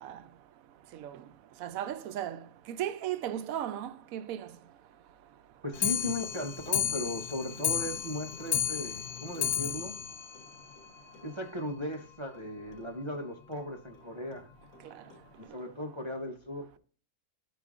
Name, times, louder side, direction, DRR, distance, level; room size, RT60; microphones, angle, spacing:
voice 1, 0.9-1.2 1.6-4.5 14.8-15.0, right 11 dB, 75° right, 1.0 m, -36 dB
voice 2, 5.6-10.0 11.2-14.5 15.4-16.8, left 1 dB, 30° right, 0.6 m, -37 dB
Clock, 5.7-11.2 11.6-11.7 11.9-12.0 12.4-12.5 12.7-12.8 13.5-13.6 14.3-14.4 15.1-15.2, left 10 dB, 85° left, 1.2 m, -33 dB
13.0 x 5.1 x 2.4 m
omnidirectional pair, 1.5 m